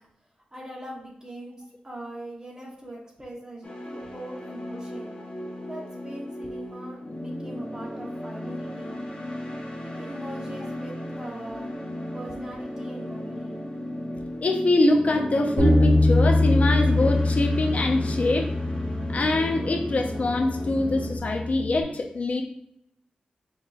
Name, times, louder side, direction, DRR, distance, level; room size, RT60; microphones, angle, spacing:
voice 1, 0.5-1.6 1.8-5.1 5.6-9.0 9.8-11.7 12.1-13.6, right 1 dB, 25° right, -3 dB, 1.2 m, -41 dB
sound 1, 3.6-21.2, equal, 40° left, 1.1 m, -35 dB
voice 2, 14.4-18.5 19.1-22.4, left 2 dB, 55° left, 4 dB, 0.5 m, -24 dB
Bass guitar, 15.6-21.8, left 1 dB, 65° right, 1.3 m, -24 dB
5.6 x 2.9 x 2.4 m, 0.74 s
wide cardioid pair, 85°, 3 cm